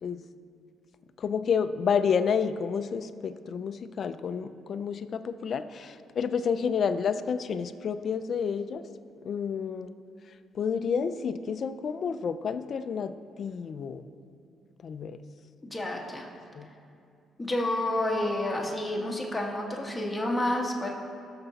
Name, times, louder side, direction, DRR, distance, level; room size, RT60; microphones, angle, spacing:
voice 1, 1.2-8.9 9.2-9.9 10.5-14.0 14.8-15.2 16.5-16.7, left 6 dB, 50° left, 11 dB, 0.5 m, -30 dB
voice 2, 15.7-16.3 17.4-20.9, left 1 dB, 15° left, -1 dB, 1.6 m, -29 dB
20.0 x 6.8 x 4.1 m, 2.5 s
cardioid pair, 115°, 0 cm